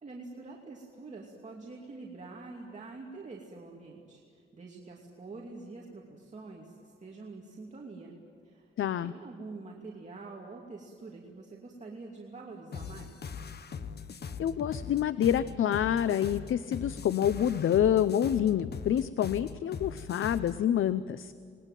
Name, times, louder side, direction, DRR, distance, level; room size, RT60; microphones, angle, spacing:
voice 1, 0.0-8.1 8.4-8.7 9.0-13.3, right 3 dB, 35° right, -2 dB, 2.6 m, -46 dB
voice 2, 8.8-9.1 14.4-21.3, left 10 dB, 80° left, 14 dB, 0.6 m, -27 dB
sound 1, 12.7-20.6, left 6 dB, 55° left, 1.0 m, -41 dB
27.5 x 20.5 x 9.2 m, 2.2 s
wide cardioid pair, 135°, 21 cm